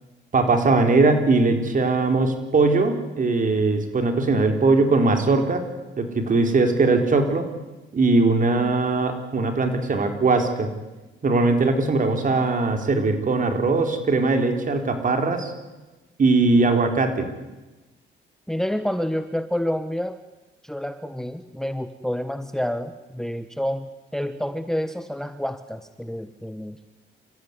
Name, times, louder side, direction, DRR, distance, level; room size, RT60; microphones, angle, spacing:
voice 1, 0.3-5.6 6.0-7.5 7.9-10.7 11.2-15.5 16.2-17.3, right 3 dB, 40° right, 6 dB, 4.2 m, -20 dB
voice 2, 18.5-20.2 20.6-26.8, equal, ahead, 10 dB, 1.2 m, -28 dB
28.0 x 15.0 x 9.7 m, 1.1 s
cardioid pair, 90°, 20 cm